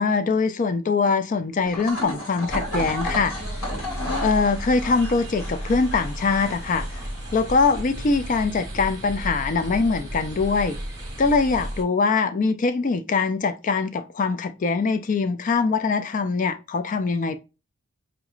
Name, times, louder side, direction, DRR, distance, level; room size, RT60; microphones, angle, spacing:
voice 1, 0.0-3.3 4.2-7.0 7.3-10.8 11.2-17.4, left 4 dB, 35° left, 0.3 m, -23 dB
sound 1, 1.6-7.4, left 1 dB, 75° left, 2.0 m, -34 dB
sound 2, 2.5-11.8, right 1 dB, 15° right, 1.1 m, -33 dB
5.0 x 3.0 x 2.3 m
head